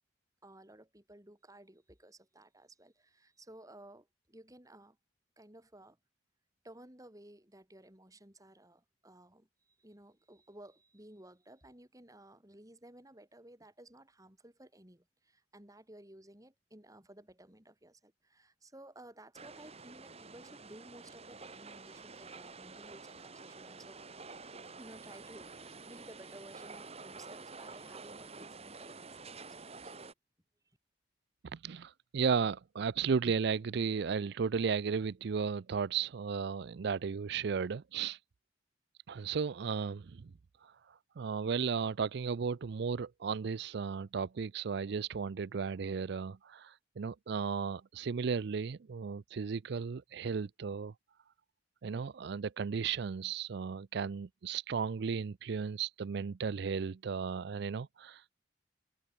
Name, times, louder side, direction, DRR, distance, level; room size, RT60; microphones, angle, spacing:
voice 1, 0.4-5.0 5.4-6.0 6.6-9.5 9.8-24.0 24.8-29.9, right 1 dB, 20° right, 5.5 m, -56 dB
sound 1, 19.3-30.1, right 4 dB, 35° right, 2.4 m, -49 dB
voice 2, 31.5-38.2 39.1-40.3 40.6-50.9 51.8-58.5, right 6 dB, 65° right, 0.4 m, -35 dB
head